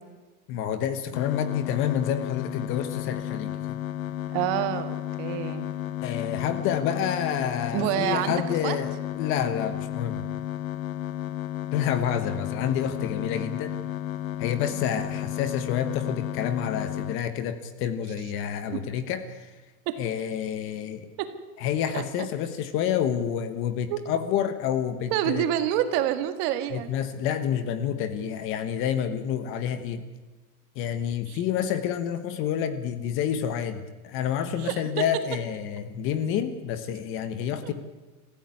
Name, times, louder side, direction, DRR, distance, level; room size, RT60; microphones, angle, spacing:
voice 1, 0.5-3.8 6.0-10.2 11.7-13.8 14.4-19.5 20.0-21.1 21.6-25.5 26.7-30.1 30.7-37.7, left 9 dB, 30° left, 11 dB, 1.2 m, -29 dB
sound 1, 1.1-17.2, left 12 dB, 65° left, 1.5 m, -33 dB
voice 2, 4.3-5.7 7.7-8.4 8.6-8.8 14.7-15.0 18.7-18.8 19.9-20.0 21.2-21.3 21.9-22.0 23.9-24.0 25.1-26.9 31.3-31.4 34.6-34.8, right 11 dB, 35° right, 10 dB, 1.8 m, -27 dB
26.0 x 15.5 x 9.6 m, 1.3 s
supercardioid pair, 175°, 43 cm